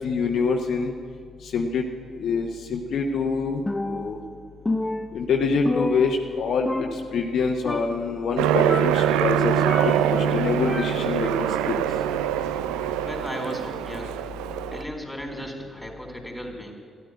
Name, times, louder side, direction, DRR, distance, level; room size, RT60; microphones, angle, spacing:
voice 1, 0.0-0.9 1.5-1.9 2.2-4.2 5.1-9.6 9.8-11.8, left 5 dB, 60° left, 3 dB, 1.0 m, -25 dB
Percussion, 3.7-4.3 4.7-6.4 6.7-7.4 7.7-8.2 8.7-10.2 10.7-11.3, left 2 dB, 20° left, 0.7 m, -30 dB
Aircraft, 8.4-14.8, right 10 dB, 75° right, 0.4 m, -24 dB
voice 2, 12.8-14.2 14.7-16.7, equal, 5° left, 3 dB, 3.6 m, -36 dB
13.5 x 10.0 x 9.5 m, 2.1 s
figure-of-eight pair, 40°, 0 cm